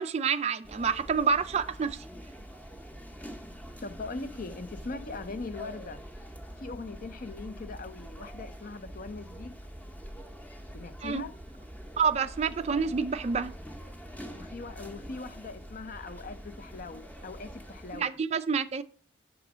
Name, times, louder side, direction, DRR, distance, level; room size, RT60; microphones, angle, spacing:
voice 1, 0.0-2.0 11.0-11.2 12.0-13.5 17.9-18.8, right 5 dB, 30° right, 0.3 m, -28 dB
sound 1, 0.6-18.0, equal, 5° left, 0.7 m, -45 dB
voice 2, 3.8-6.0 6.6-9.5 10.7-11.3 14.2-18.1, left 3 dB, 45° left, 0.5 m, -40 dB
6.1 x 3.8 x 6.1 m
head